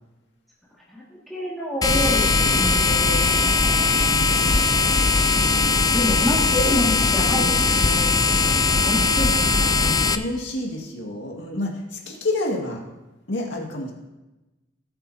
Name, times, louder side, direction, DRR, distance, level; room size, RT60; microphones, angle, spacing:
voice 1, 0.9-3.6 5.9-8.6 8.8-9.6, left 1 dB, ahead, -7 dB, 2.0 m, -28 dB
sound 1, 1.8-10.2, left 4 dB, 20° left, 0.5 m, -19 dB
voice 2, 9.8-12.8 13.3-13.9, left 2 dB, 85° left, 0 dB, 1.9 m, -29 dB
18.5 x 8.0 x 2.8 m, 1.0 s
head